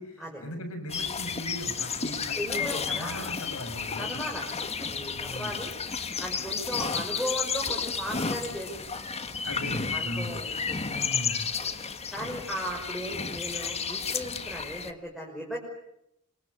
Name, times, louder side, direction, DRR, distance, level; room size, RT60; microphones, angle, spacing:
voice 1, 0.0-4.2 5.1-5.6 9.4-10.4 10.8-11.5, equal, 70° left, 7 dB, 7.1 m, -38 dB
sound 1, 0.9-14.9, left 5 dB, 30° left, 1.5 m, -32 dB
voice 2, 2.4-3.2 4.0-5.7 6.2-9.3 9.9-11.1 11.6-11.7 12.1-15.6, equal, ahead, -3 dB, 5.7 m, -37 dB
26.5 x 25.0 x 8.4 m, 0.80 s
head